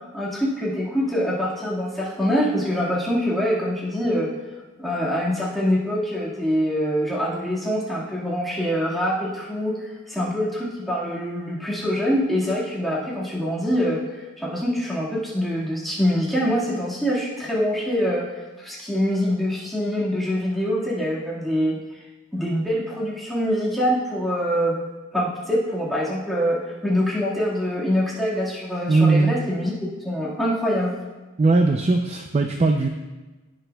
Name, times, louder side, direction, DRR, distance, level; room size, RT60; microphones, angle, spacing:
voice 1, 0.1-4.3 4.8-14.0 14.4-18.3 18.6-21.8 22.3-24.8 25.1-31.0, equal, ahead, -8 dB, 1.8 m, -24 dB
voice 2, 28.9-29.4 31.4-32.9, right 3 dB, 30° right, 4 dB, 0.5 m, -19 dB
16.5 x 6.2 x 2.3 m, 1.2 s
head